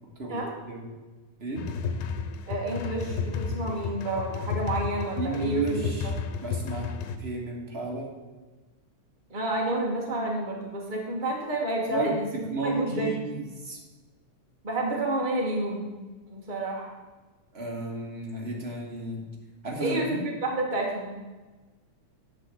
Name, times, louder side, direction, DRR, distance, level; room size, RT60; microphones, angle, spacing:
voice 1, 0.2-0.9 1.4-1.7 5.2-6.1 6.4-6.8 7.2-8.1 11.9-12.1 12.5-13.8 17.5-19.2 19.6-20.2, right 3 dB, 35° right, -2 dB, 1.0 m, -32 dB
sound 1, 1.6-7.2, left 5 dB, 90° left, 2.3 m, -32 dB
voice 2, 2.5-5.8 9.3-13.2 14.6-16.0 16.3-16.9 19.8-21.1, right 1 dB, 70° right, -2 dB, 0.4 m, -30 dB
9.8 x 5.0 x 7.5 m, 1.2 s
omnidirectional pair, 3.6 m